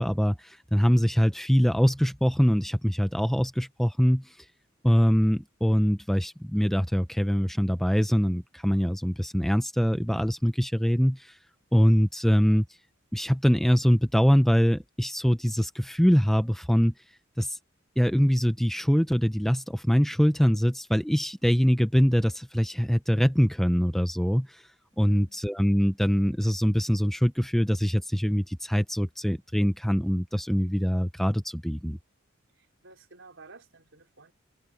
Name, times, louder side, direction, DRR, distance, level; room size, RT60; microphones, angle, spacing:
voice 1, 0.0-4.4 4.8-11.4 11.7-12.6 13.1-16.9 17.4-17.6 18.0-24.6 25.0-32.0, equal, ahead, 0.8 m, -23 dB
voice 2, 25.1-25.5 32.5-34.3, right 3 dB, 65° right, 4.8 m, -53 dB
head